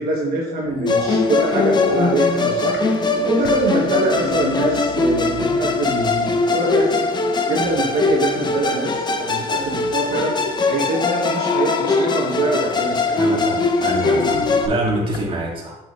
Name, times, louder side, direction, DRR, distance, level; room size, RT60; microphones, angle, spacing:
voice 1, 0.0-2.8 3.2-7.1 7.5-10.4 10.7-13.2, right 2 dB, 65° right, -3 dB, 1.2 m, -24 dB
sound 1, 0.6-15.2, left 6 dB, 70° left, 0.6 m, -31 dB
Musical instrument, 0.9-14.7, left 3 dB, 25° left, 0.6 m, -21 dB
voice 2, 13.1-15.8, right 2 dB, 30° right, -3 dB, 2.0 m, -25 dB
7.0 x 5.8 x 2.5 m, 0.95 s
cardioid pair, 110°, 17 cm